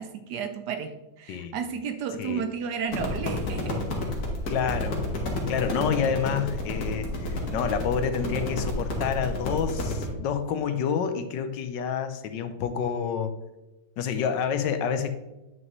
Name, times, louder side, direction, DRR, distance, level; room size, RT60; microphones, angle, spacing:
voice 1, 0.0-3.8, right 6 dB, 70° right, 8 dB, 1.1 m, -33 dB
voice 2, 1.3-1.6 2.2-2.5 4.5-5.0 5.5-13.3 14.0-15.1, left 7 dB, 75° left, 9 dB, 1.3 m, -28 dB
sound 1, 2.9-10.1, left 2 dB, 55° left, 1.9 m, -30 dB
9.1 x 6.2 x 3.0 m, 1.0 s
omnidirectional pair, 2.0 m